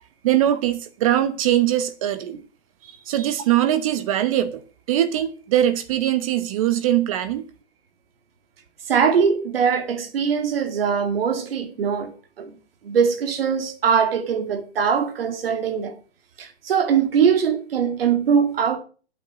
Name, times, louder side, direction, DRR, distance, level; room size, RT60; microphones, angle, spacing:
voice 1, 0.2-2.3 2.8-4.6 4.9-7.4, right 12 dB, 30° right, 1.0 m, -21 dB
voice 2, 8.9-12.5 12.8-15.9 16.4-18.8, right 7 dB, 55° right, 2.4 m, -21 dB
11.5 x 8.5 x 6.2 m
hypercardioid pair, 155°, 34 cm